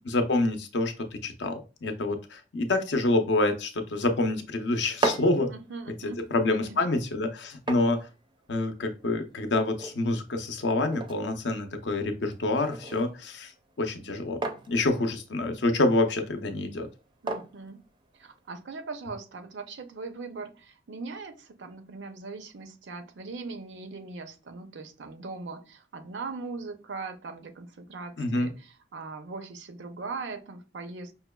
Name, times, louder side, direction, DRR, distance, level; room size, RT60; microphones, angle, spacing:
voice 1, 0.1-5.5 6.3-8.1 8.5-13.5 13.8-14.4 14.7-16.9 28.2-28.5, left 2 dB, 70° left, 6 dB, 0.6 m, -27 dB
sound 1, 4.7-18.6, right 2 dB, 25° right, 0.4 m, -39 dB
voice 2, 5.5-6.8 17.2-17.8 18.2-31.1, right 4 dB, 80° right, 7 dB, 0.5 m, -40 dB
5.5 x 2.2 x 2.2 m, 0.32 s
head